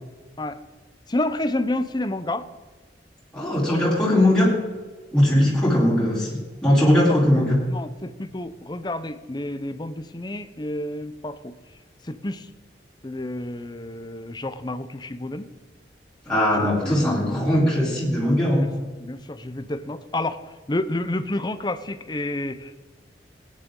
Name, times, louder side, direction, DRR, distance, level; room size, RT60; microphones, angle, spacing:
voice 1, 1.1-2.5 7.1-7.2 7.7-11.5 12.0-12.5 13.0-15.5 16.8-17.8 19.0-20.4 20.7-22.8, left 1 dB, 25° left, 11 dB, 0.7 m, -29 dB
voice 2, 3.3-4.6 5.1-7.6 16.2-18.7, left 1 dB, 5° left, -7 dB, 4.0 m, -20 dB
18.0 x 9.8 x 3.8 m, 1.3 s
head